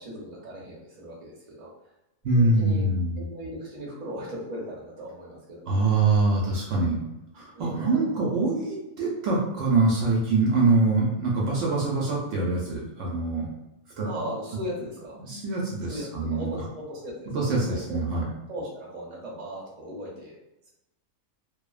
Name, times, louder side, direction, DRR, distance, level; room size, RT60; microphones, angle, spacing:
voice 1, 0.0-1.7 2.4-2.8 3.3-6.0 7.5-8.3 14.0-15.2 15.9-17.4 17.7-18.0 18.5-20.4, equal, 40° right, -5 dB, 0.7 m, -38 dB
voice 2, 2.2-3.2 5.7-7.0 7.3-13.5 14.0-14.1 15.2-16.5 17.3-18.3, right 3 dB, 70° right, -3 dB, 0.8 m, -24 dB
2.6 x 2.1 x 2.3 m, 0.92 s
omnidirectional pair, 1.4 m